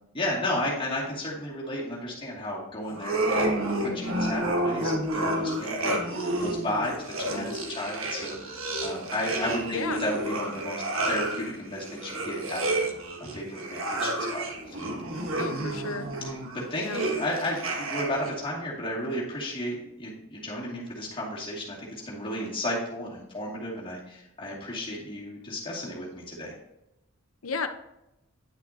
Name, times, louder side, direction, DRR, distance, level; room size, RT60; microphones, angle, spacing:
voice 1, 0.1-3.5 3.9-12.9 13.3-14.8 16.2-26.6, left 1 dB, 25° left, -5 dB, 2.4 m, -33 dB
sound 1, 2.9-18.3, right 1 dB, 65° right, 1.5 m, -30 dB
voice 2, 9.6-10.0 15.4-16.1 16.8-17.0 27.4-27.7, left 4 dB, 75° left, 8 dB, 0.8 m, -32 dB
10.5 x 6.3 x 2.8 m, 0.87 s
head